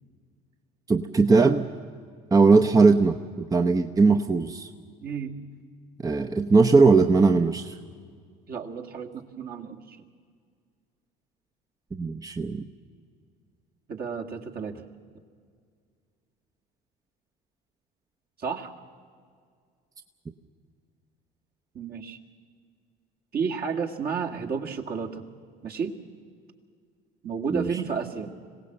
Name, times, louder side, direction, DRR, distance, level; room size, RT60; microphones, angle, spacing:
voice 1, 0.9-1.7 2.3-4.7 6.0-7.8 12.0-12.7 27.5-27.7, right 4 dB, 15° right, 6 dB, 0.8 m, -19 dB
voice 2, 5.0-5.4 8.5-10.1 13.9-14.9 18.4-18.7 21.7-22.2 23.3-25.2 25.6-26.0 27.2-28.3, right 6 dB, 50° right, 1 dB, 2.1 m, -32 dB
25.5 x 17.0 x 7.8 m, 2.1 s
hypercardioid pair, 75°, 21 cm